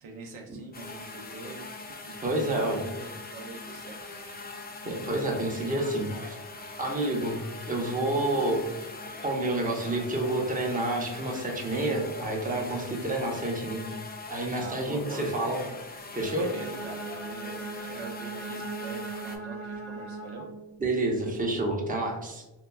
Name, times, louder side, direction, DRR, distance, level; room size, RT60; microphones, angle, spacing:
voice 1, 0.0-4.0 6.5-6.7 14.5-15.3 16.4-20.5, right 3 dB, 80° right, 0 dB, 0.6 m, -44 dB
sound 1, 0.7-19.4, left 3 dB, 20° left, 0.4 m, -42 dB
voice 2, 2.2-2.9 4.9-6.4 6.8-8.6 9.2-13.8 14.3-15.6 16.2-16.5 20.8-22.4, right 1 dB, 15° right, 0 dB, 0.7 m, -29 dB
Bowed string instrument, 16.3-20.7, right 3 dB, 85° left, 1.2 m, -39 dB
2.9 x 2.3 x 2.2 m, 1.0 s
cardioid pair, 45°, 48 cm